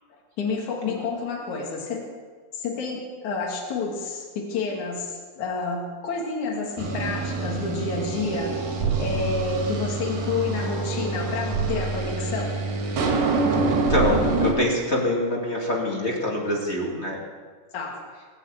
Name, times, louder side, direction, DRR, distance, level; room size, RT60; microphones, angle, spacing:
voice 1, 0.4-2.0 2.6-12.6 17.7-18.0, left 4 dB, 60° left, 0 dB, 3.5 m, -29 dB
sound 1, 6.8-14.5, right 4 dB, 70° right, 3.7 m, -26 dB
voice 2, 13.7-17.2, left 1 dB, 20° left, -2 dB, 2.2 m, -25 dB
20.0 x 7.6 x 8.9 m, 1.5 s
omnidirectional pair, 4.1 m